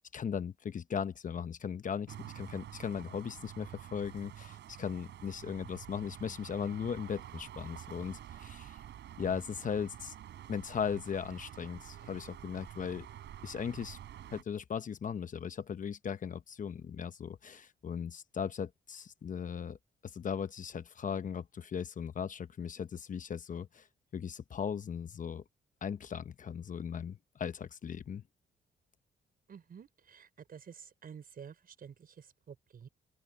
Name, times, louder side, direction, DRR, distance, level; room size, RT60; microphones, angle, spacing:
voice 1, 0.0-8.8 9.2-10.1 10.5-13.1 13.4-14.0 14.3-19.8 20.0-23.8 24.1-25.4 25.8-28.2, left 7 dB, 45° left, 1.0 m, -38 dB
sound 1, 2.1-14.4, right 11 dB, 85° right, 6.6 m, -49 dB
voice 2, 29.5-32.9, right 7 dB, 55° right, 5.8 m, -51 dB
open air
cardioid pair, 105°, 18 cm